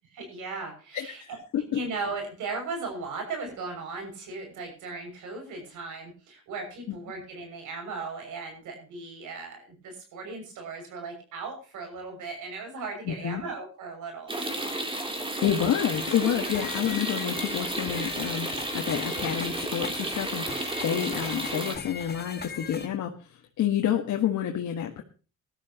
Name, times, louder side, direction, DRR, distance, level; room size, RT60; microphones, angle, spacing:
voice 1, 0.1-1.4 1.7-14.7 15.0-15.2, right 3 dB, 85° right, 4 dB, 6.6 m, -37 dB
voice 2, 0.9-1.6 6.9-7.0 13.0-13.4 15.4-25.0, left 10 dB, 70° left, 2 dB, 1.7 m, -29 dB
sound 1, 14.3-21.8, right 1 dB, 15° right, 3.2 m, -32 dB
sound 2, 15.9-22.9, left 5 dB, 30° left, 1.6 m, -41 dB
20.0 x 12.5 x 3.0 m, 0.36 s
cardioid pair, 90°, 30 cm